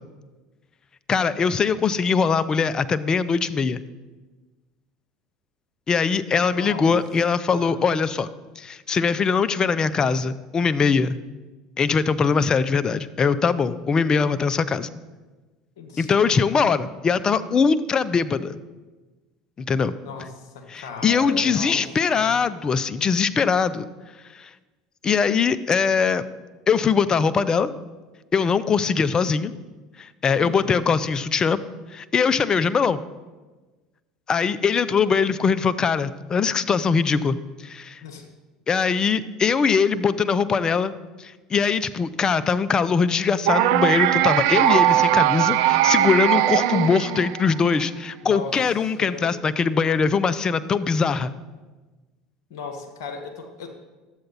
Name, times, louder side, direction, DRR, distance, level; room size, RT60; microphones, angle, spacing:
voice 1, 1.1-3.8 5.9-8.3 8.6-11.2 11.8-14.9 16.0-18.6 19.6-19.9 20.7-23.9 24.3-24.5 25.0-26.2 26.7-27.7 28.3-29.5 30.0-31.6 31.9-33.0 34.3-37.4 37.6-38.0 38.7-40.9 41.2-51.3, left 5 dB, 30° left, 15 dB, 0.5 m, -21 dB
voice 2, 6.5-6.9 7.5-7.8 15.8-16.1 20.0-21.8 22.1-22.3 30.4-30.8 38.0-38.3 48.2-48.7 49.0-49.4 52.5-53.7, left 5 dB, 70° left, 4 dB, 1.2 m, -37 dB
sound 1, 43.4-47.6, right 13 dB, 70° right, 0.4 m, -19 dB
11.5 x 7.8 x 4.1 m, 1.3 s
hypercardioid pair, 80°, 2 cm